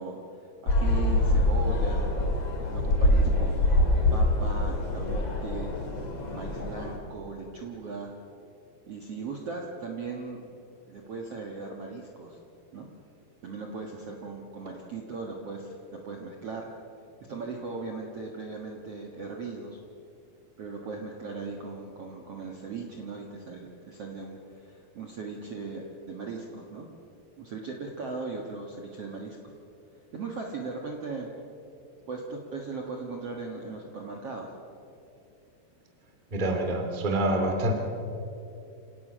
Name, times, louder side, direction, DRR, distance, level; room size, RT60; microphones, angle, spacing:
voice 1, 0.0-2.1 2.7-5.7 6.2-8.2 8.9-10.4 10.9-12.4 12.7-12.9 13.4-16.7 17.3-19.8 20.6-26.9 27.4-29.4 30.1-31.3 32.1-34.5, right 4 dB, 50° right, 0 dB, 1.9 m, -38 dB
sound 1, 0.7-6.9, left 1 dB, 40° left, 3.7 m, -25 dB
voice 2, 36.3-37.7, right 1 dB, 15° right, 3 dB, 1.6 m, -26 dB
28.0 x 18.0 x 6.3 m, 2.7 s
omnidirectional pair, 4.7 m